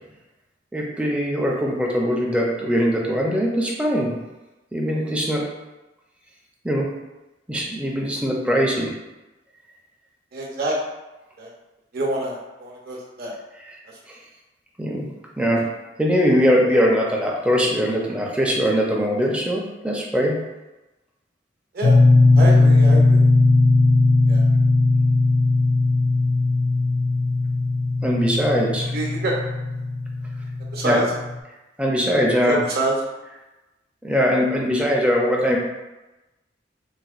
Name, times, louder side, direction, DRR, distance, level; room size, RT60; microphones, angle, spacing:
voice 1, 0.7-4.2 4.7-5.5 6.6-6.9 7.5-8.9 14.1-14.2 14.8-15.1 15.4-15.7 16.0-20.4 28.0-28.9 30.8-31.0 31.8-32.6 34.0-35.6, equal, 5° right, -2 dB, 0.4 m, -21 dB
voice 2, 10.3-10.7 11.4-11.5 11.9-13.4 21.7-22.0 22.3-23.3 24.3-24.5 28.9-29.3 30.7-31.0 32.5-33.0, right 1 dB, 55° right, -3 dB, 0.7 m, -26 dB
sound 1, 21.8-31.4, left 2 dB, 70° left, 0.5 m, -18 dB
4.0 x 2.1 x 2.4 m, 1.1 s
head